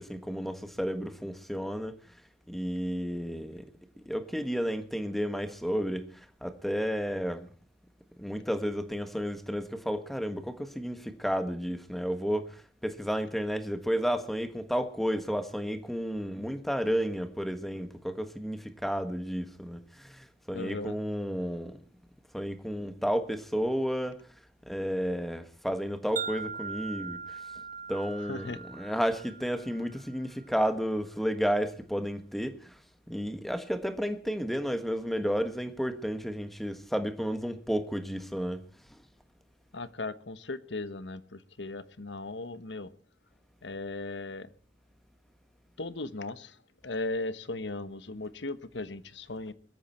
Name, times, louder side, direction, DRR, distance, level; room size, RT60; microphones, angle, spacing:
voice 1, 0.0-2.1 2.5-3.6 4.0-7.5 8.2-21.8 22.3-24.2 24.7-27.4 27.9-32.8 33.1-38.6 38.9-39.0, equal, ahead, 1.5 m, -32 dB
voice 2, 20.5-21.0 28.3-28.6 39.7-42.9 43.6-44.5 45.8-46.6 46.8-49.5, left 2 dB, 90° left, 1.3 m, -37 dB
Wind chime, 26.2-30.4, right 5 dB, 45° right, 1.8 m, -40 dB
21.5 x 14.0 x 4.5 m
head